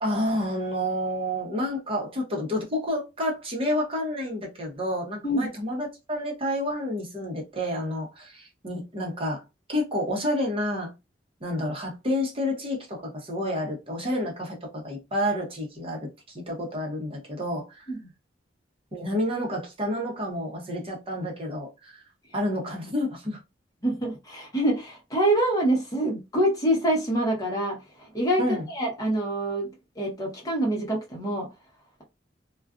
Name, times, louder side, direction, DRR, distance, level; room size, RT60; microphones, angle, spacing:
voice 1, 0.0-9.4 9.7-10.9 11.4-17.8 18.9-22.0 22.3-23.4 28.4-28.6, left 1 dB, 30° right, 0.9 m, -29 dB
voice 2, 23.8-29.7 30.0-31.5, right 1 dB, 20° left, 0.9 m, -26 dB
2.4 x 2.3 x 2.3 m
head